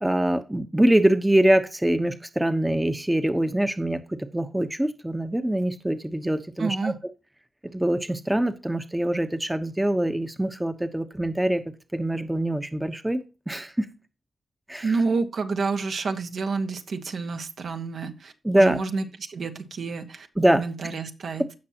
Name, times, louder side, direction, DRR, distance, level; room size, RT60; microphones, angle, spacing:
voice 1, 0.0-6.9 7.7-11.6 11.9-13.9 14.7-15.0 18.4-18.8 20.4-20.6, right 1 dB, 10° right, 9 dB, 1.0 m, -24 dB
voice 2, 6.6-7.0 14.8-20.3 20.5-21.4, right 4 dB, 65° right, 5 dB, 1.5 m, -29 dB
16.0 x 5.9 x 3.0 m, 0.31 s
cardioid pair, 80°, 0 cm